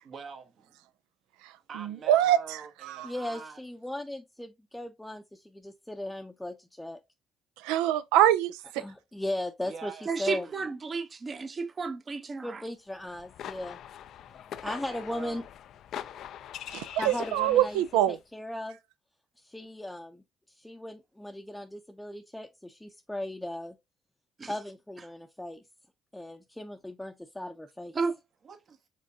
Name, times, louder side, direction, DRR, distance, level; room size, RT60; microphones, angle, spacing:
voice 1, 0.0-0.8 1.7-3.6 9.6-10.6 14.6-15.4 28.4-28.8, right 6 dB, 55° right, 1.2 m, -45 dB
voice 2, 1.4-2.4 2.8-3.1 7.6-8.8 16.7-18.2, right 12 dB, 85° right, 0.4 m, -25 dB
voice 3, 3.0-7.0 8.8-10.5 12.4-13.8 14.3-15.4 17.0-18.8 19.4-23.8 24.5-25.6 26.1-28.0, left 1 dB, 10° left, 0.6 m, -38 dB
voice 4, 10.1-12.6 24.4-24.5 27.9-28.2, right 4 dB, 40° right, 0.8 m, -32 dB
sound 1, 13.0-18.0, left 10 dB, 70° left, 0.3 m, -43 dB
5.0 x 3.5 x 2.7 m
hypercardioid pair, 55°, 0 cm